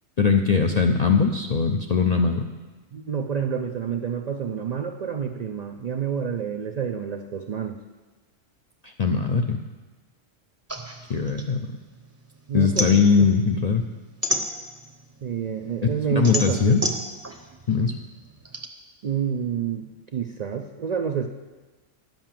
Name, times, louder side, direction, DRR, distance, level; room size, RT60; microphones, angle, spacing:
voice 1, 0.2-2.5 8.8-9.6 11.1-11.7 12.5-13.8 16.2-16.8 17.7-18.0, left 5 dB, 60° left, 4 dB, 0.4 m, -20 dB
voice 2, 2.9-7.8 12.5-13.3 15.2-16.9 19.0-21.3, right 7 dB, 85° right, 6 dB, 0.3 m, -28 dB
sound 1, 10.7-12.2 12.5-15.0 15.5-18.7, equal, 15° right, 0.6 m, -30 dB
10.5 x 5.6 x 7.4 m, 1.3 s
omnidirectional pair, 1.3 m